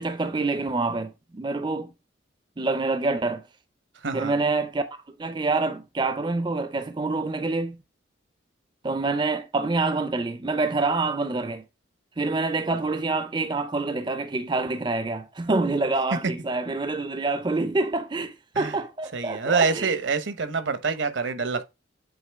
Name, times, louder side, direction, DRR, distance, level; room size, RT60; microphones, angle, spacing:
voice 1, 0.0-1.9 2.6-3.4 4.1-4.8 5.2-7.8 8.8-11.6 12.2-20.0, right 3 dB, 25° right, 0.5 m, -26 dB
voice 2, 4.0-4.3 18.5-18.7 19.1-21.6, right 4 dB, 70° right, 0.9 m, -26 dB
8.0 x 3.6 x 3.4 m
head